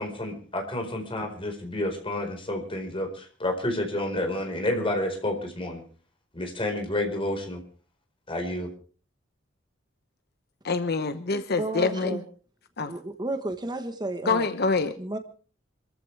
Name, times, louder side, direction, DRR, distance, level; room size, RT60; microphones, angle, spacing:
voice 1, 0.0-5.8 6.3-7.6 8.3-8.7, left 1 dB, 30° left, 4 dB, 4.7 m, -30 dB
voice 2, 10.6-12.2 12.8-12.9 14.2-15.0, left 4 dB, 55° left, 9 dB, 1.0 m, -26 dB
voice 3, 11.6-12.2 12.9-14.5 15.0-15.2, right 2 dB, 20° right, 8 dB, 1.3 m, -32 dB
26.5 x 14.5 x 3.4 m, 0.40 s
head